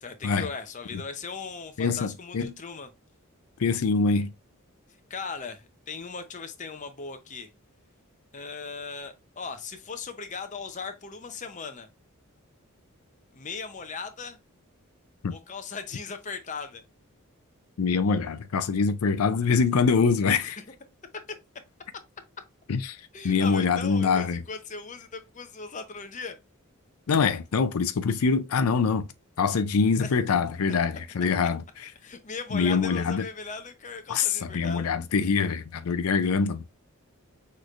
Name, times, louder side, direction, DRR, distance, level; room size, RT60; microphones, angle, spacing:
voice 1, 0.0-2.9 5.1-7.5 8.3-11.9 13.3-14.4 15.3-16.8 23.1-26.4 30.0-30.1 32.0-34.9, left 5 dB, 35° left, 0.7 m, -38 dB
voice 2, 1.8-2.5 3.6-4.3 15.2-15.3 17.8-20.6 22.7-23.0 23.2-24.4 27.1-29.1 29.4-31.9 32.5-33.2 34.1-36.7, left 5 dB, 85° left, 0.5 m, -24 dB
6.2 x 3.2 x 2.4 m
head